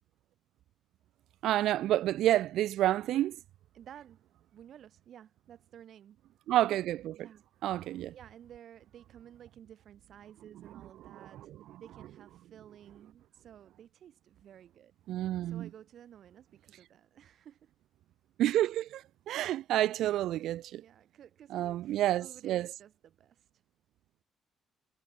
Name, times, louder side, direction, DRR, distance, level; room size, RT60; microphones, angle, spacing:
voice 1, 1.4-3.4 6.5-7.3 7.6-8.1 11.0-11.2 11.5-11.6 15.1-15.7 18.4-20.8 21.5-22.7, right 13 dB, 85° right, 0.4 m, -29 dB
voice 2, 3.7-4.2 4.5-6.2 7.2-7.4 7.8-11.5 11.8-14.9 15.4-17.7 19.6-19.7 20.8-23.5, right 10 dB, 65° right, 1.8 m, -54 dB
cardioid pair, 90°, 0 cm